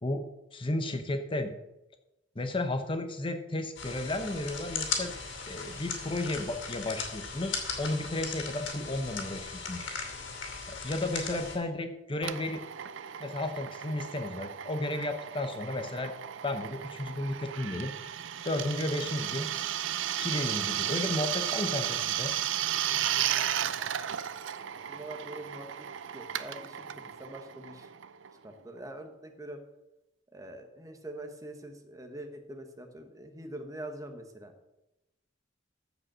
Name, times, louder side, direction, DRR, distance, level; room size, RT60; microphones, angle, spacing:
voice 1, 0.5-1.5 2.4-5.1 5.5-10.2 10.7-12.6 13.2-16.1 16.4-18.1 18.4-19.5 20.2-22.3, left 2 dB, 30° left, 7 dB, 0.8 m, -33 dB
sound 1, 3.8-11.6, left 5 dB, 90° left, 2.6 m, -37 dB
Drill, 12.2-28.6, right 11 dB, 90° right, 0.5 m, -34 dB
voice 2, 23.3-24.3 24.6-25.9 26.1-27.9 28.4-29.6 30.3-34.5, right 1 dB, 20° right, 5 dB, 1.3 m, -44 dB
14.5 x 5.3 x 6.2 m, 0.95 s
head